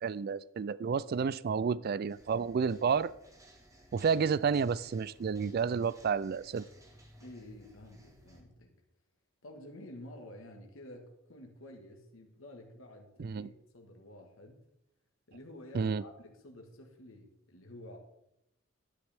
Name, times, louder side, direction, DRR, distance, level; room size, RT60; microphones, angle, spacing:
voice 1, 0.0-3.1 3.9-6.7 13.2-13.5 15.7-16.0, right 6 dB, 50° right, 19 dB, 0.3 m, -30 dB
sound 1, 2.1-8.4, equal, 15° right, 1.6 m, -59 dB
voice 2, 7.2-8.7 9.4-14.7 15.3-18.0, left 1 dB, 85° left, 2 dB, 1.6 m, -50 dB
11.0 x 10.0 x 3.5 m, 0.82 s
head